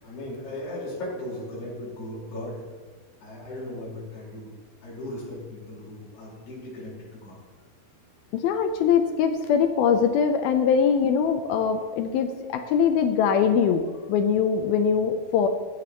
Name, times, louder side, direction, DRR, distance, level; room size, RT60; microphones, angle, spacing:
voice 1, 0.0-2.6 3.2-4.5 4.8-7.4, left 1 dB, 55° left, -7 dB, 6.1 m, -37 dB
voice 2, 8.3-15.5, left 7 dB, 80° left, 7 dB, 2.3 m, -22 dB
16.0 x 12.0 x 3.0 m, 1.5 s
omnidirectional pair, 4.9 m